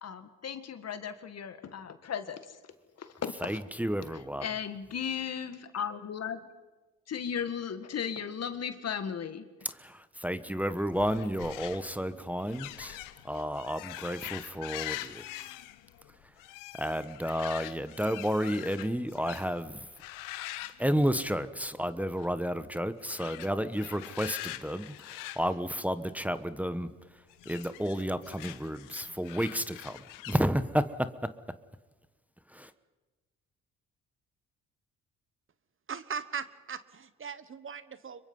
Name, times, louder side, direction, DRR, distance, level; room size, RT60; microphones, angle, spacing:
voice 1, 0.0-2.6 3.0-3.6 4.4-6.5 7.1-9.5, left 7 dB, 55° left, 10 dB, 1.9 m, -36 dB
voice 2, 3.4-4.5 9.6-15.2 16.7-19.9 20.8-26.9 27.5-31.3 32.5-32.7, equal, 5° right, 11 dB, 1.1 m, -31 dB
sound 1, 10.8-19.6 20.0-21.7 21.9-22.4 23.0-26.4 27.3-30.4, left 16 dB, 90° left, 0.9 m, -44 dB
voice 3, 35.9-38.2, right 6 dB, 40° right, 15 dB, 1.1 m, -39 dB
25.5 x 23.0 x 5.5 m, 1.2 s
supercardioid pair, 65°, 31 cm